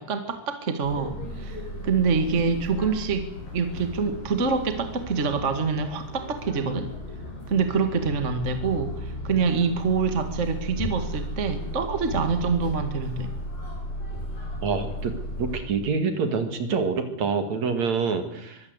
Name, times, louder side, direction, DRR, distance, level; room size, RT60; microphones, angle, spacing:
voice 1, 0.0-3.3 3.5-6.9 7.5-13.3, right 5 dB, 30° right, 7 dB, 1.4 m, -26 dB
sound 1, 0.8-15.6, equal, 60° left, 9.2 m, -35 dB
voice 2, 14.6-15.1 15.4-18.6, right 5 dB, 50° right, 7 dB, 2.9 m, -26 dB
23.5 x 16.0 x 8.1 m, 0.81 s
omnidirectional pair, 4.5 m